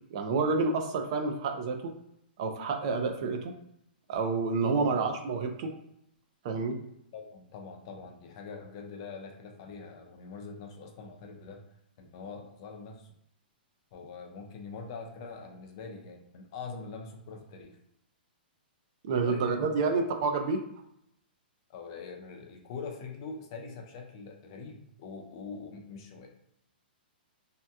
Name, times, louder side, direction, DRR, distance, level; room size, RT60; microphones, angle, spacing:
voice 1, 0.1-1.9 2.4-3.5 4.1-5.7 6.4-6.8 19.0-20.7, right 4 dB, 35° right, 4 dB, 0.4 m, -29 dB
voice 2, 7.1-11.6 12.0-13.1 13.9-17.8 19.2-20.0 21.7-26.3, left 4 dB, 35° left, 2 dB, 0.5 m, -43 dB
2.7 x 2.2 x 3.4 m, 0.77 s
hypercardioid pair, 170°, 5 cm